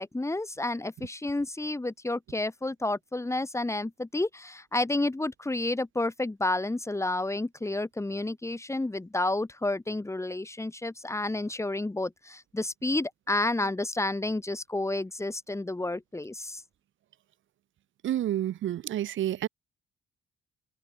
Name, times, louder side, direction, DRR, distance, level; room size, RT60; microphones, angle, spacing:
voice 1, 0.0-16.6, left 2 dB, 15° left, 3.3 m, -30 dB
voice 2, 18.0-19.5, right 12 dB, 75° right, 6.6 m, -29 dB
open air
cardioid pair, 90°, 20 cm